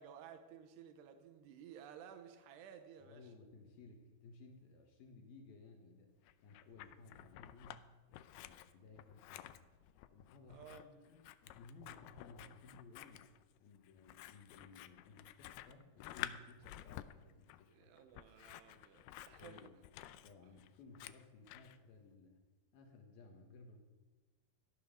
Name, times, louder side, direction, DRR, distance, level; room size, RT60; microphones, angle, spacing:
voice 1, 0.0-3.3 10.5-10.9 17.7-19.7, right 8 dB, 90° right, 7 dB, 3.1 m, -56 dB
voice 2, 3.0-9.7 10.1-13.3 13.6-17.9 19.4-22.4 22.7-23.8, left 3 dB, 70° left, 3 dB, 3.1 m, -59 dB
Scissors, 6.3-7.8 8.1-21.8, left 14 dB, 85° left, 2.7 m, -52 dB
15.0 x 12.0 x 6.4 m, 1.2 s
omnidirectional pair, 4.6 m